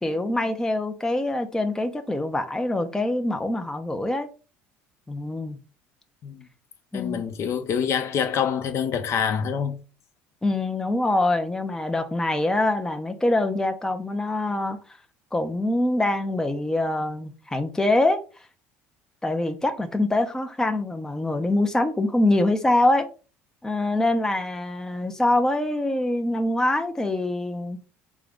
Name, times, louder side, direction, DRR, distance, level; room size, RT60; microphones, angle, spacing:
voice 1, 0.0-4.3 5.1-5.6 6.9-7.2 10.4-14.8 15.3-18.2 19.2-23.1 23.6-27.8, left 2 dB, 10° left, 0.7 m, -24 dB
voice 2, 6.9-9.8, left 7 dB, 50° left, 0.9 m, -26 dB
3.8 x 3.7 x 3.5 m
supercardioid pair, 80°, 6 cm